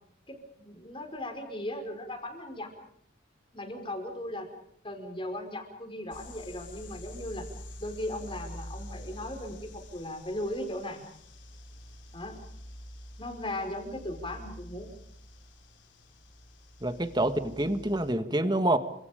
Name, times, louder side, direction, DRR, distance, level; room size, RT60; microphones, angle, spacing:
voice 1, 0.3-2.7 3.5-4.5 4.8-7.4 7.8-11.0 12.1-12.4 13.2-14.9, left 1 dB, 25° left, 5 dB, 5.1 m, -37 dB
sound 1, 6.1-18.1, left 1 dB, 70° left, 3.7 m, -47 dB
voice 2, 16.8-18.8, right 1 dB, 20° right, 10 dB, 1.7 m, -27 dB
30.0 x 26.5 x 5.2 m, 0.71 s
head